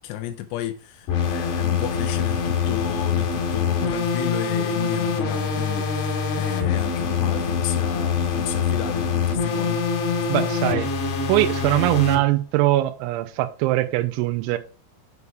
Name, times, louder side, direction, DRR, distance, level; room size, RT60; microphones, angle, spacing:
voice 1, 0.0-9.8, left 13 dB, 90° left, 2.4 m, -33 dB
sound 1, 1.1-12.2, left 6 dB, 70° left, 3.3 m, -24 dB
voice 2, 10.3-10.9 11.3-14.6, right 16 dB, 85° right, 2.9 m, -22 dB
8.2 x 4.6 x 3.4 m
omnidirectional pair, 5.7 m